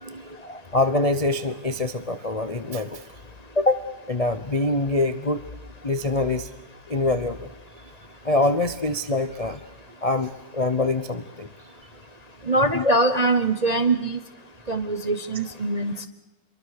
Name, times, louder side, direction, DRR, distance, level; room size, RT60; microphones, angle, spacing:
voice 1, 0.4-3.0 3.6-5.4 5.8-6.5 6.9-7.5 8.2-9.6 10.0-11.5 12.7-12.9, left 2 dB, 35° left, 11 dB, 0.5 m, -24 dB
voice 2, 12.5-14.2 14.7-16.1, right 2 dB, 35° right, 8 dB, 0.6 m, -23 dB
27.0 x 23.0 x 6.7 m, 1.0 s
omnidirectional pair, 2.1 m